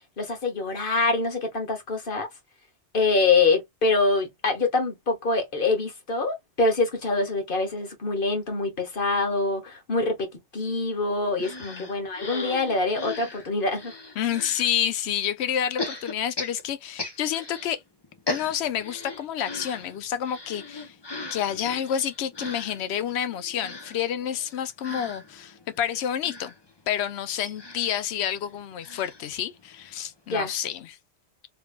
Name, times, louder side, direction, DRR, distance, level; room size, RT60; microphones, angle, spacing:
voice 1, 0.2-2.3 2.9-10.3 10.5-13.9 30.3-30.5, left 3 dB, 50° left, 1.3 m, -25 dB
sound 1, 11.4-14.7 15.8-17.8 18.0-30.0 30.3-30.4 30.6-30.8, left 3 dB, 25° left, 0.7 m, -38 dB
voice 2, 14.2-17.8 18.3-21.0 21.3-26.5 26.9-31.0, left 9 dB, 70° left, 0.8 m, -29 dB
3.2 x 3.2 x 2.3 m
omnidirectional pair, 1.2 m